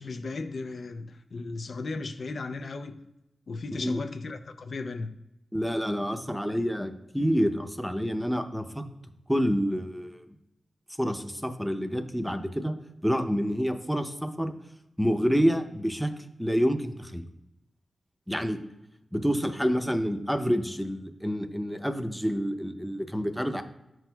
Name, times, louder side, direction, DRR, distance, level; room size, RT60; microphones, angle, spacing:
voice 1, 0.0-3.0 3.5-5.2, left 3 dB, 65° left, 0.4 m, -36 dB
voice 2, 5.5-8.9 9.3-10.3 11.0-12.7 13.0-14.5 15.0-16.1 16.4-17.3 18.3-18.6 19.1-23.6, equal, ahead, 0.6 m, -28 dB
8.8 x 6.0 x 2.3 m
cardioid pair, 65°, 0 cm